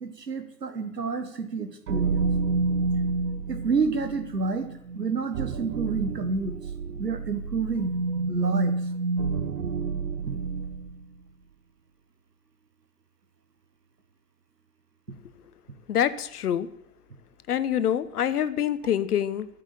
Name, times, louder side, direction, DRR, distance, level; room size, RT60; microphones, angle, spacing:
voice 1, 0.0-2.2 3.5-4.7 4.9-6.5 7.0-7.9 8.3-8.8, right 4 dB, 85° right, 9 dB, 1.4 m, -29 dB
sound 1, 1.9-11.0, right 4 dB, 65° right, 1.1 m, -29 dB
voice 2, 15.9-16.7 17.5-19.5, left 10 dB, 70° left, 14 dB, 1.0 m, -25 dB
12.5 x 7.4 x 7.0 m, 0.76 s
figure-of-eight pair, 90°, 48 cm